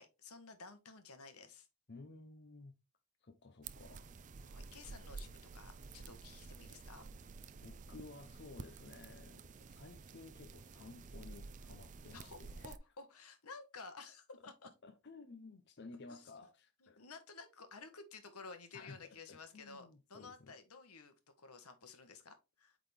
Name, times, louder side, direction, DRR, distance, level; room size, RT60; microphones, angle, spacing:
voice 1, 0.0-1.7 4.4-7.0 12.1-14.7 16.1-16.3 16.8-22.8, left 4 dB, 90° left, 1.4 m, -54 dB
voice 2, 1.9-2.7 3.2-4.1 7.6-12.8 14.6-17.0 18.7-20.5, left 3 dB, 50° left, 0.7 m, -55 dB
sound 1, 3.6-12.8, right 4 dB, 35° right, 0.4 m, -51 dB
8.4 x 3.9 x 3.4 m
head